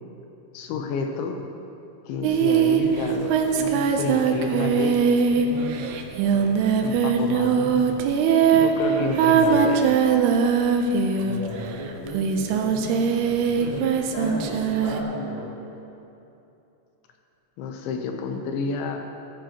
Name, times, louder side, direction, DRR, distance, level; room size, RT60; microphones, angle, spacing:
voice 1, 0.5-1.4 2.1-3.3 3.6-5.0 6.8-8.1 8.5-9.8 17.6-19.0, left 5 dB, 80° left, 4 dB, 3.0 m, -29 dB
Singing, 2.2-11.6 12.1-15.0, right 6 dB, 90° right, 2.3 m, -21 dB
voice 2, 11.2-15.5, equal, 70° right, -8 dB, 0.5 m, -35 dB
15.5 x 14.0 x 3.0 m, 2.9 s
omnidirectional pair, 5.5 m